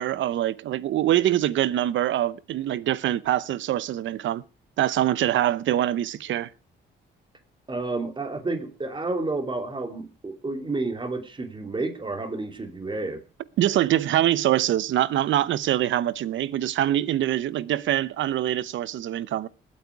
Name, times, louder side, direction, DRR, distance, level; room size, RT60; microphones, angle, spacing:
voice 1, 0.0-4.4 4.8-6.5 13.6-19.5, right 12 dB, 75° right, 0.8 m, -24 dB
voice 2, 7.7-13.2, right 3 dB, 25° right, 3.0 m, -30 dB
20.0 x 8.6 x 4.7 m
cardioid pair, 90°, 20 cm